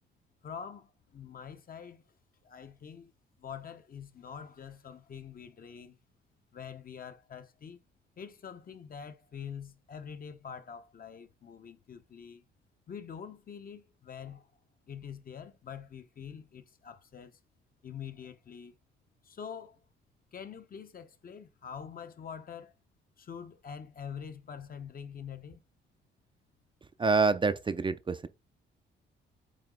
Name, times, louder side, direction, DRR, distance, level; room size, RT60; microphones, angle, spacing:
voice 1, 0.4-2.0 2.4-3.1 3.4-6.0 6.5-7.8 8.2-12.5 12.9-14.5 14.9-17.4 17.8-18.7 19.2-19.8 20.3-22.7 23.2-25.6, left 7 dB, 45° left, 1.0 m, -45 dB
voice 2, 27.0-28.3, right 4 dB, 25° right, 0.5 m, -27 dB
8.7 x 2.9 x 3.8 m
cardioid pair, 90°, 20 cm